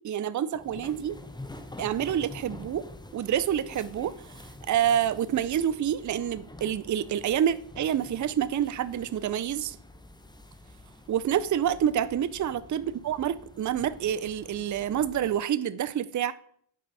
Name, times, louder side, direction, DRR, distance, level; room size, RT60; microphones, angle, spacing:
voice 1, 0.0-1.1 1.8-2.8 3.1-4.3 4.7-9.8 11.1-16.3, right 9 dB, 40° right, 0.4 m, -27 dB
sound 1, 0.5-15.3, left 1 dB, 10° left, 0.7 m, -47 dB
7.6 x 4.7 x 4.0 m
cardioid pair, 55°, 49 cm